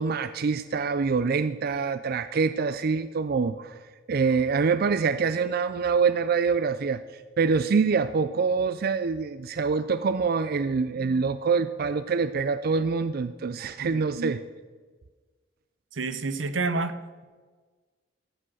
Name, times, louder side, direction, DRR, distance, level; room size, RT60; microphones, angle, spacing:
voice 1, 0.0-3.8 4.1-14.4, right 5 dB, 50° right, 12 dB, 0.4 m, -25 dB
voice 2, 13.8-14.4 15.9-17.0, right 3 dB, 85° right, 12 dB, 0.8 m, -29 dB
14.5 x 7.7 x 6.3 m, 1.4 s
head